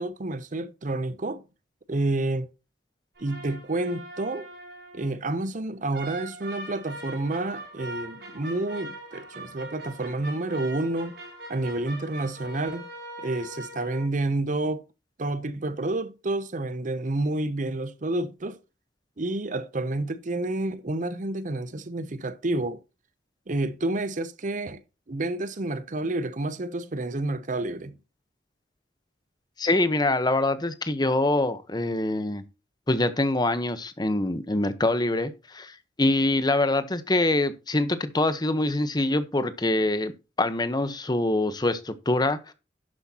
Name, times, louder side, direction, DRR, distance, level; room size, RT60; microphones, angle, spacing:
voice 1, 0.0-1.4 1.9-2.5 3.2-4.5 4.9-11.1 11.5-12.9 13.2-14.8 15.2-18.6 19.2-22.8 23.5-24.8 25.1-28.0, right 2 dB, 45° right, 0.7 m, -29 dB
sound 1, 3.2-5.2 5.9-14.1, right 2 dB, 65° right, 6.3 m, -41 dB
voice 2, 29.6-32.4 32.9-40.1 40.4-42.5, left 2 dB, 25° left, 1.0 m, -25 dB
11.5 x 7.9 x 2.9 m
head